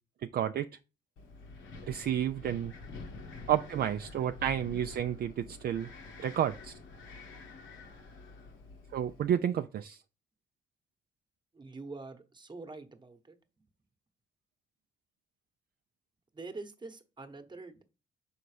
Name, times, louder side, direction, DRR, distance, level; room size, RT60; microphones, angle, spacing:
voice 1, 0.2-0.7 1.9-2.7 3.5-5.9 6.2-6.7 8.9-10.0, right 10 dB, 50° right, 0.4 m, -31 dB
Wind, 1.2-9.3, left 3 dB, 70° left, 1.3 m, -48 dB
voice 2, 11.5-13.4 16.3-17.8, right 3 dB, 20° right, 1.1 m, -45 dB
5.7 x 4.0 x 4.9 m
cardioid pair, 90°, 20 cm